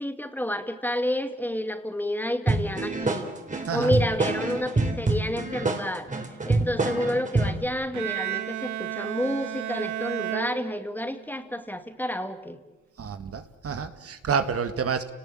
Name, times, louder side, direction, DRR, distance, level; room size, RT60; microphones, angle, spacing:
voice 1, 0.0-3.3 3.5-6.1 6.4-12.6, left 1 dB, 5° left, 8 dB, 2.3 m, -30 dB
sound 1, 2.5-7.7, right 2 dB, 25° right, 3.8 m, -26 dB
voice 2, 3.7-4.0 13.0-15.1, right 6 dB, 50° right, 9 dB, 2.0 m, -29 dB
Bowed string instrument, 7.9-11.3, right 12 dB, 70° right, 1.6 m, -33 dB
30.0 x 19.0 x 8.8 m, 1.2 s
cardioid pair, 90°, 30 cm